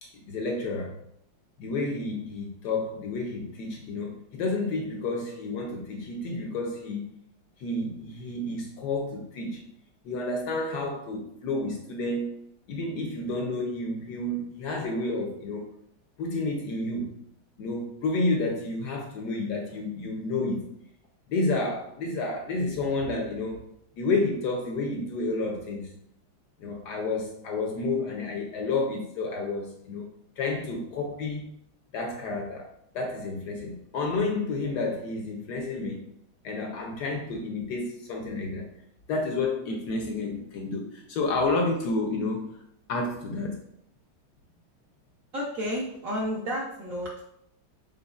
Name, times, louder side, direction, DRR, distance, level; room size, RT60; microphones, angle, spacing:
voice 1, 0.0-0.9 1.6-7.1 7.6-9.6 10.0-12.4 12.7-15.7 16.2-17.1 17.6-20.7 21.3-23.6 24.0-25.9 26.6-30.1 30.4-31.4 31.9-32.7 32.9-36.1 36.4-38.7 39.1-42.6 42.9-43.6, left 2 dB, 70° left, 2 dB, 1.0 m, -30 dB
voice 2, 45.3-47.2, equal, 60° right, -3 dB, 0.9 m, -31 dB
5.3 x 3.7 x 2.3 m, 0.74 s
omnidirectional pair, 2.1 m